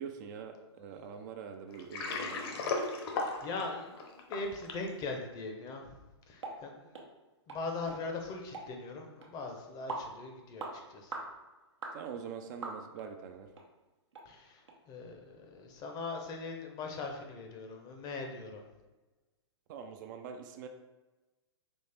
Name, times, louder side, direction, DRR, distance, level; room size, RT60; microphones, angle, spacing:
voice 1, 0.0-2.5 11.9-13.5 19.7-20.7, right 7 dB, 40° right, 6 dB, 0.4 m, -44 dB
voice 2, 0.9-1.2 3.2-6.0 6.3-7.0 7.5-11.1 14.2-18.6, left 3 dB, 25° left, 3 dB, 0.6 m, -41 dB
Water, 1.7-4.9, left 3 dB, 55° left, 0.8 m, -35 dB
sound 1, 6.4-6.6 6.9-7.1 7.5-7.6 7.9-8.0 8.5-8.7 9.2-9.3 9.9-10.1 10.6-10.7 11.1-11.3 11.8-12.0 12.6-13.1 13.5-13.6 14.1-14.3 14.7-14.8, right 3 dB, 80° right, 0.9 m, -40 dB
4.3 x 3.1 x 3.3 m, 1.2 s
hypercardioid pair, 125°, 15 cm